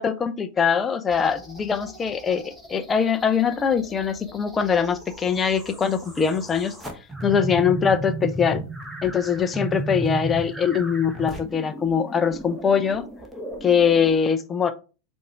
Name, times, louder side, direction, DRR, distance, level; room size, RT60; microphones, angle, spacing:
voice 1, 0.0-6.7 7.2-8.6 9.0-13.0 13.6-14.7, left 7 dB, 20° left, 0.6 m, -22 dB
sound 1, 1.1-14.2, right 1 dB, 5° right, 1.2 m, -35 dB
7.6 x 2.7 x 4.7 m
figure-of-eight pair, 90°, 0 cm